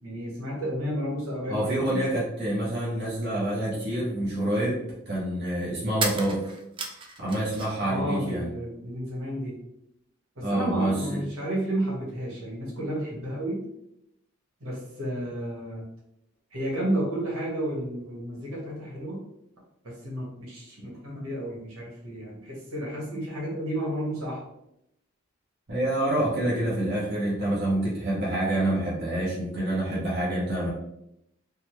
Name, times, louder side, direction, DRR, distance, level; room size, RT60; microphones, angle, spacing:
voice 1, 0.0-2.0 7.8-9.6 10.3-13.6 14.6-15.8 16.5-19.2 19.8-24.4, right 1 dB, 85° right, -4 dB, 1.3 m, -32 dB
voice 2, 1.5-6.4 7.2-8.5 10.4-11.2 25.7-30.7, right 1 dB, 55° right, -6 dB, 0.8 m, -27 dB
sound 1, 6.0-7.9 8.2-9.0, right 4 dB, 25° right, 0.4 m, -34 dB
3.6 x 2.1 x 3.0 m, 0.81 s
head